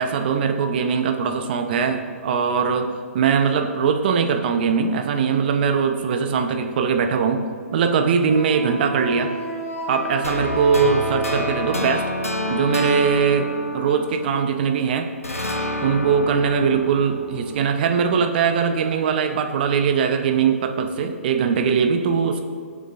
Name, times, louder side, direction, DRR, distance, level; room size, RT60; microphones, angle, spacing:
voice 1, 0.0-2.9 3.1-7.4 7.7-9.3 9.9-12.0 12.5-15.1 15.8-22.4, right 6 dB, 45° right, 6 dB, 0.9 m, -21 dB
Wind instrument woodwind instrument, 8.3-12.7, right 1 dB, 60° left, 1.9 m, -32 dB
sound 1, 10.2-14.8 15.2-18.3, left 1 dB, 85° left, 1.1 m, -29 dB
18.5 x 7.3 x 2.6 m, 2.1 s
figure-of-eight pair, 125°, 8 cm